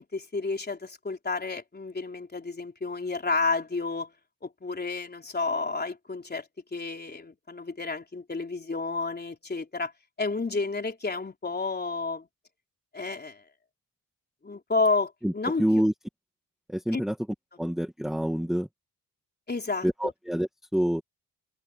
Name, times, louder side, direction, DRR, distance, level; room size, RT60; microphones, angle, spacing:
voice 1, 0.0-4.1 4.4-9.9 10.2-12.3 12.9-13.4 14.4-15.7 16.9-17.0 19.5-20.1, left 3 dB, 25° left, 3.8 m, -31 dB
voice 2, 15.6-15.9 16.7-17.1 17.6-18.7 19.8-21.0, equal, ahead, 1.3 m, -26 dB
open air
cardioid pair, 105°, 35 cm